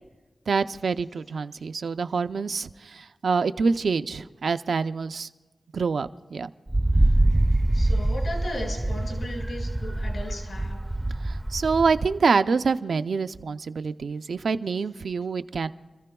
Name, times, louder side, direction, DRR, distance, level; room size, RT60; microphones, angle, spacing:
voice 1, 0.5-5.3 5.7-6.5 11.2-15.7, right 5 dB, 85° right, 10 dB, 0.4 m, -26 dB
Wind, 6.7-12.2, right 1 dB, 20° right, 0.4 m, -24 dB
voice 2, 7.7-10.8, left 1 dB, 75° left, 0 dB, 4.8 m, -36 dB
29.5 x 14.5 x 2.3 m, 1.2 s
wide cardioid pair, 95°, 0 cm